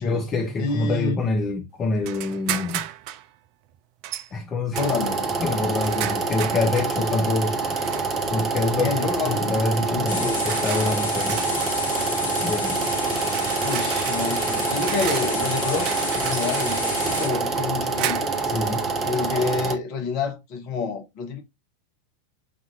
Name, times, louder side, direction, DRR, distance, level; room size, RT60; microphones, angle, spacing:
voice 1, 0.0-2.9 4.3-4.8 5.4-7.6 8.3-11.4 12.4-12.8 18.5-18.9, left 3 dB, 25° left, 0.5 m, -26 dB
voice 2, 0.6-1.2 4.7-5.3 8.8-10.5 13.6-18.3 19.0-21.4, left 5 dB, 45° left, 0.9 m, -28 dB
sound 1, 2.0-3.3 4.0-4.3 4.7-7.0 7.8-8.3 9.3-9.6 10.2-18.5, right 12 dB, 45° right, 0.3 m, -34 dB
sound 2, 4.7-19.8, right 4 dB, 20° right, 0.8 m, -26 dB
sound 3, 10.1-17.3, left 3 dB, 70° left, 1.0 m, -31 dB
5.1 x 2.4 x 2.7 m
figure-of-eight pair, 90°, 0 cm